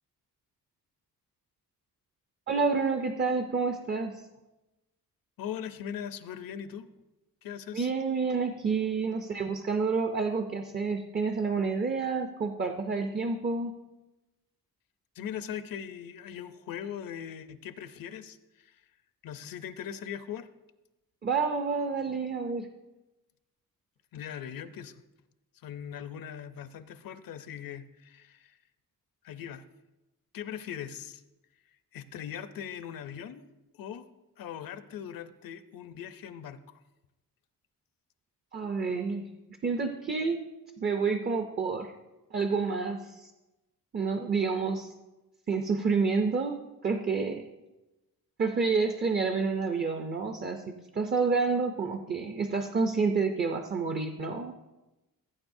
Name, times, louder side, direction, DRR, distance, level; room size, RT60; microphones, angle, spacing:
voice 1, 2.5-4.2 7.7-13.7 21.2-22.7 38.5-39.3 39.6-40.4 40.8-41.9 42.3-43.3 43.9-44.9 45.5-47.4 48.4-54.5, right 4 dB, 30° right, 6 dB, 0.5 m, -29 dB
voice 2, 5.4-6.9 7.4-7.9 15.1-18.8 19.2-20.5 24.1-25.0 25.6-28.6 29.2-29.6 30.3-31.2 31.9-33.5 33.7-34.1 34.4-36.8, left 9 dB, 70° left, 11 dB, 0.7 m, -40 dB
16.0 x 8.9 x 2.6 m, 1.0 s
wide cardioid pair, 170°, 36 cm